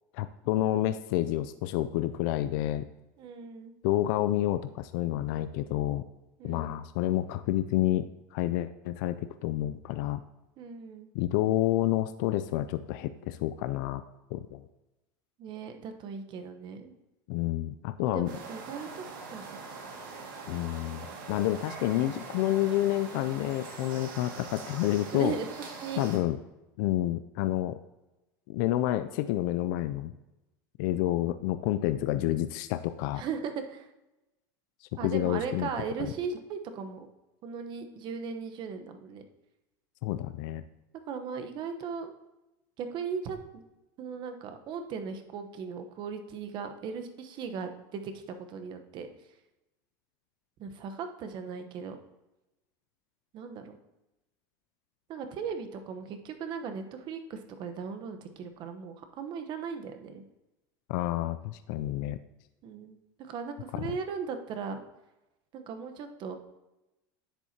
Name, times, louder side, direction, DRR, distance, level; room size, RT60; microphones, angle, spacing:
voice 1, 0.1-2.9 3.8-6.0 6.4-10.2 11.1-14.0 14.3-14.6 17.3-18.3 20.5-25.3 26.0-26.4 26.8-27.8 28.5-30.1 30.8-33.2 34.8-35.7 40.0-40.6 60.9-62.2 63.7-63.9, left 14 dB, 65° left, 10 dB, 0.4 m, -29 dB
voice 2, 3.2-3.7 6.4-6.8 10.6-11.1 15.4-16.9 18.0-19.0 19.3-19.5 25.1-25.5 25.8-26.0 33.2-33.9 35.0-37.1 37.4-39.2 41.1-42.1 42.8-43.6 44.0-49.1 50.6-52.0 53.3-53.8 55.1-60.2 62.6-64.8 65.5-66.4, right 6 dB, 45° right, 7 dB, 1.0 m, -38 dB
sound 1, 18.3-26.2, right 4 dB, 80° right, 2.1 m, -43 dB
10.0 x 7.4 x 2.8 m, 0.99 s
supercardioid pair, 120°, 11 cm